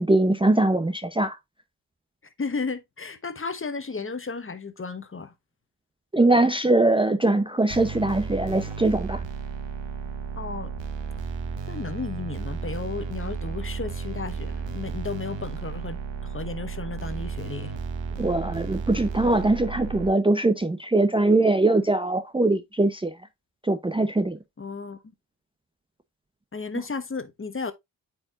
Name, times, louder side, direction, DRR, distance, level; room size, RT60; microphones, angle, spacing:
voice 1, 0.0-1.4 6.1-9.2 18.2-23.1 23.6-24.4, right 2 dB, 10° right, 0.6 m, -22 dB
voice 2, 2.4-5.3 10.4-10.7 11.7-17.7 24.6-25.0 26.5-27.7, left 4 dB, 30° left, 1.0 m, -34 dB
sound 1, 7.7-20.1, right 5 dB, 75° right, 1.2 m, -33 dB
8.6 x 4.7 x 2.4 m
cardioid pair, 60°, 45 cm